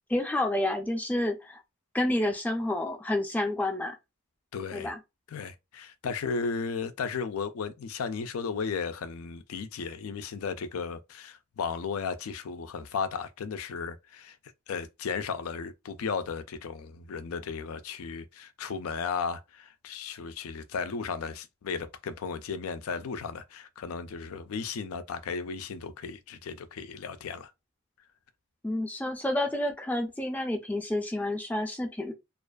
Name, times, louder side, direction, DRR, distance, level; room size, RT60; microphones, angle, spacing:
voice 1, 0.1-1.6 1.9-3.9 4.7-5.0 28.6-32.1, left 1 dB, 10° left, 0.4 m, -29 dB
voice 2, 4.5-4.9 5.3-14.4 14.7-27.5, left 5 dB, 90° left, 0.4 m, -35 dB
2.4 x 2.3 x 2.2 m
head